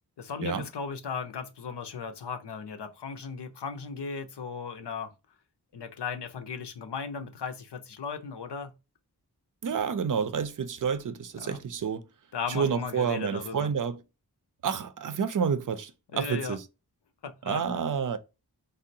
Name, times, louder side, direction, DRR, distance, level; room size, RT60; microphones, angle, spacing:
voice 1, 0.2-5.1 5.7-8.7 11.4-11.6 12.3-13.7 16.1-16.6 17.2-17.6, left 6 dB, 80° left, 0.6 m, -36 dB
voice 2, 9.6-12.1 12.5-14.0 14.6-16.6 17.4-18.2, right 6 dB, 50° right, 0.5 m, -29 dB
3.7 x 2.0 x 2.6 m
wide cardioid pair, 45°, 40 cm